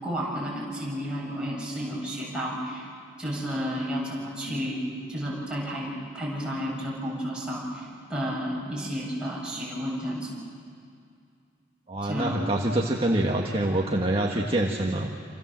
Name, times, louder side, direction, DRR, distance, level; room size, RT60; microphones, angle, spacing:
voice 1, 0.0-2.9 3.2-5.9 6.1-10.3 12.0-12.4, equal, 5° right, -5 dB, 7.9 m, -32 dB
voice 2, 11.9-15.1, right 1 dB, 30° right, -1 dB, 1.6 m, -25 dB
28.0 x 28.0 x 7.6 m, 2.3 s
head